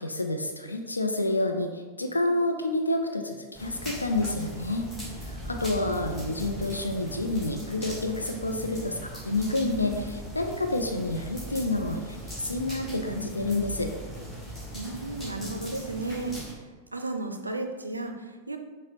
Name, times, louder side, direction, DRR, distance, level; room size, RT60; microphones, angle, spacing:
voice 1, 0.0-4.9 5.2-13.9, left 2 dB, 80° left, 4 dB, 0.4 m, -29 dB
sound 1, 3.5-16.5, equal, 10° left, 1.1 m, -39 dB
voice 2, 14.7-16.4 16.9-18.6, right 2 dB, 80° right, 6 dB, 0.3 m, -33 dB
6.2 x 2.1 x 3.0 m, 1.4 s
figure-of-eight pair, 90°, 0 cm